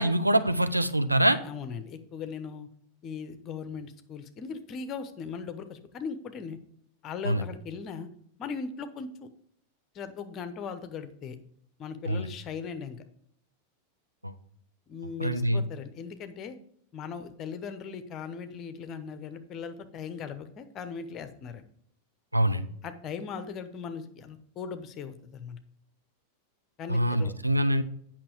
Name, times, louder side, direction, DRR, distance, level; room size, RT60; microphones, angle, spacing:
voice 1, 0.0-1.4 7.2-7.5 12.1-12.3 14.2-14.3 15.2-15.6 22.3-22.6 26.9-27.8, right 1 dB, 85° right, 10 dB, 0.6 m, -24 dB
voice 2, 1.4-2.7 3.0-6.6 7.0-8.1 8.4-9.3 9.9-11.4 11.8-13.0 14.9-16.6 16.9-21.6 22.8-25.6 26.8-27.4, left 6 dB, 30° left, 10 dB, 0.9 m, -39 dB
8.7 x 5.9 x 4.9 m, 0.65 s
figure-of-eight pair, 90°, 0 cm